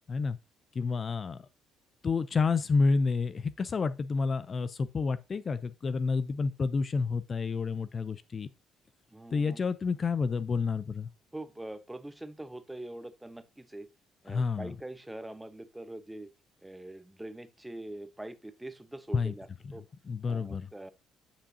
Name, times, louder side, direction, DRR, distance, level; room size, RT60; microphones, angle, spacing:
voice 1, 0.7-1.4 2.0-8.5 9.3-11.1 14.3-14.7 19.1-19.3 20.1-20.7, left 4 dB, 40° left, 0.5 m, -29 dB
voice 2, 9.1-9.7 11.3-13.9 14.2-16.3 16.6-19.8 20.2-20.9, right 1 dB, 10° right, 1.0 m, -43 dB
9.7 x 6.1 x 2.8 m
supercardioid pair, 65°, 0 cm